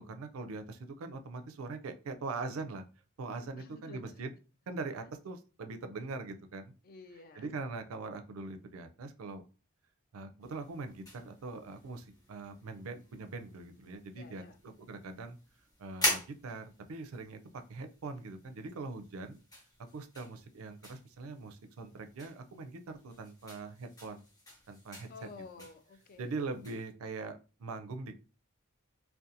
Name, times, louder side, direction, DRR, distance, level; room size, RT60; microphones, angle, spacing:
voice 1, 0.0-2.8 3.2-4.3 4.7-6.7 7.4-9.4 10.1-14.4 14.9-15.4 15.8-19.4 19.9-24.2 24.7-25.1 26.2-28.2, right 3 dB, 85° right, 8 dB, 0.4 m, -42 dB
voice 2, 3.6-4.2 6.8-7.5 14.1-14.6 25.1-26.5, left 4 dB, 45° left, 8 dB, 0.4 m, -52 dB
sound 1, 10.4-26.9, left 1 dB, 20° left, 0.8 m, -43 dB
2.5 x 2.2 x 2.7 m, 0.33 s
head